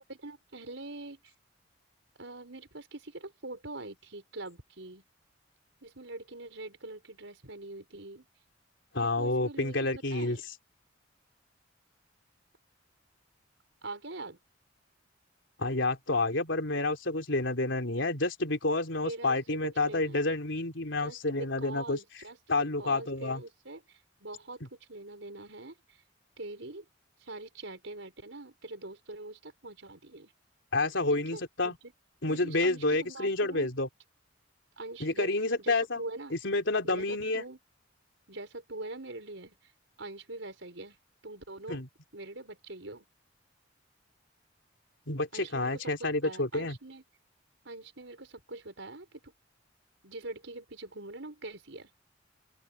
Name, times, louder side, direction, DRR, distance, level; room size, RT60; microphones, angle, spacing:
voice 1, 0.1-1.3 2.2-5.0 5.8-8.3 9.0-10.4 13.8-14.4 19.0-20.2 20.9-26.0 26.4-26.9 27.2-30.3 31.3-31.9 32.3-33.7 34.8-35.3 35.6-36.4 36.8-37.6 38.3-39.7 40.0-41.0 41.2-41.8 42.1-43.1 45.3-47.0 47.7-49.3 50.0-51.9, right 2 dB, 75° right, 5.2 m, -44 dB
voice 2, 8.9-10.4 15.6-22.0 22.5-23.4 30.7-31.8 32.2-33.9 35.0-36.0 36.3-37.4 41.7-41.9 45.1-46.8, left 2 dB, 70° left, 3.7 m, -29 dB
open air
head